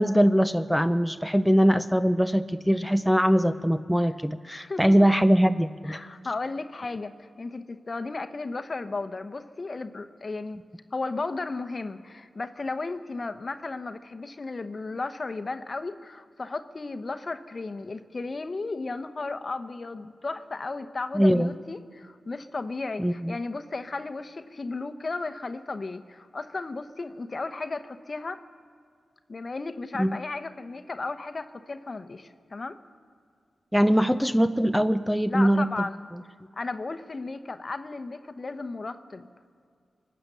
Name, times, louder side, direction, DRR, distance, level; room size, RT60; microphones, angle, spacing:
voice 1, 0.0-6.0 21.1-21.5 23.0-23.3 30.0-30.1 33.7-35.9, equal, ahead, 11 dB, 0.5 m, -22 dB
voice 2, 4.5-5.1 5.8-10.6 10.9-28.4 29.3-32.8 35.3-36.0 36.6-39.3, left 3 dB, 45° left, 10 dB, 0.9 m, -34 dB
24.0 x 8.8 x 6.8 m, 2.1 s
cardioid pair, 55°, 0 cm